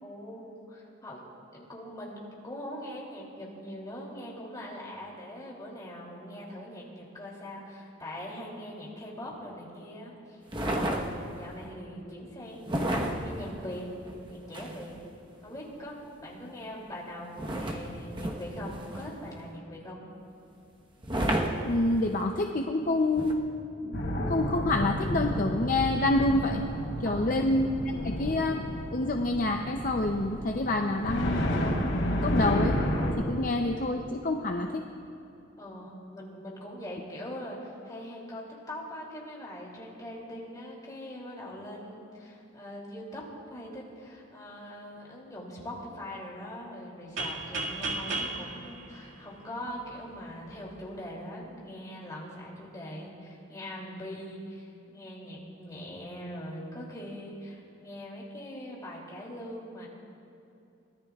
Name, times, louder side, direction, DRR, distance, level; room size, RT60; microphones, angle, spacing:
voice 1, 0.0-1.2 1.5-10.4 10.9-13.9 14.2-15.0 15.4-20.0 27.0-27.6 35.6-43.2 43.5-59.9, equal, 20° left, -4 dB, 2.8 m, -42 dB
sound 1, 10.5-11.5 12.6-15.0 17.4-19.3 21.0-22.2 23.2-23.3, right 1 dB, 25° right, 1.1 m, -32 dB
voice 2, 21.6-23.3 23.8-24.0 24.3-26.6 27.0-28.6 28.9-31.9 32.2-32.8 33.2-34.8, left 2 dB, 40° left, 3 dB, 0.6 m, -27 dB
sound 2, 23.9-33.1, equal, 90° left, 4.1 m, -31 dB
sound 3, 47.2-49.9, right 2 dB, 75° right, 2.0 m, -35 dB
24.0 x 17.5 x 2.4 m, 2.7 s
head